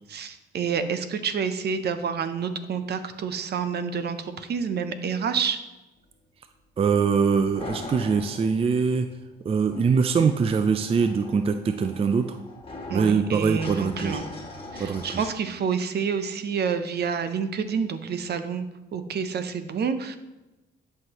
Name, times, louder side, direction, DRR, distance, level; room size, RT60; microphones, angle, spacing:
voice 1, 0.1-5.6 12.9-14.2 14.7-18.7 18.9-20.2, right 6 dB, 55° right, 10 dB, 0.7 m, -28 dB
voice 2, 6.8-9.1 9.4-12.4 12.9-14.2 14.8-15.0, right 5 dB, 30° right, 8 dB, 0.4 m, -23 dB
sound 1, 7.3-15.3, left 2 dB, 25° left, 1.4 m, -41 dB
10.5 x 5.8 x 3.0 m, 1.0 s
cardioid pair, 90°, 20 cm